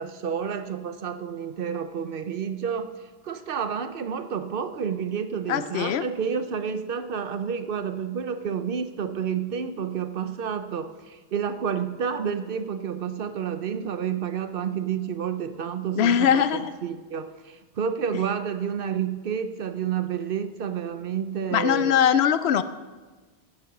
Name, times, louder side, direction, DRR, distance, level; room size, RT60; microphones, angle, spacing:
voice 1, 0.0-2.9 3.2-16.4 16.8-22.0, right 7 dB, 60° right, 10 dB, 0.9 m, -30 dB
voice 2, 5.5-6.0 16.0-16.7 21.5-22.6, left 9 dB, 75° left, 13 dB, 0.8 m, -21 dB
11.0 x 9.5 x 5.9 m, 1.3 s
omnidirectional pair, 1.1 m